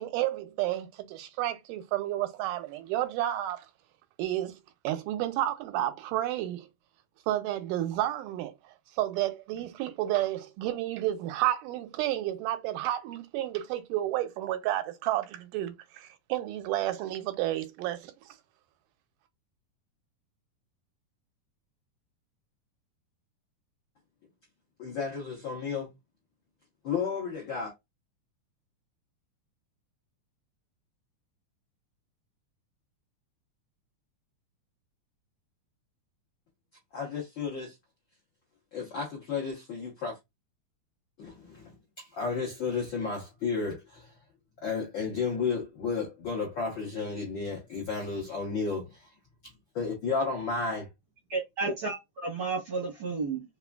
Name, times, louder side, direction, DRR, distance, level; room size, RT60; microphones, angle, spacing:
voice 1, 0.0-3.7 4.2-4.6 4.8-6.7 7.3-8.6 9.0-18.1, right 14 dB, 90° right, 2.2 m, -31 dB
voice 2, 24.8-25.9 26.8-27.7 36.9-37.7 38.7-40.1 41.2-41.3 42.2-43.8 44.6-48.8 49.7-50.8, left 5 dB, 75° left, 1.0 m, -32 dB
voice 3, 51.3-53.4, right 4 dB, 70° right, 1.1 m, -32 dB
4.8 x 2.4 x 2.3 m
omnidirectional pair, 3.6 m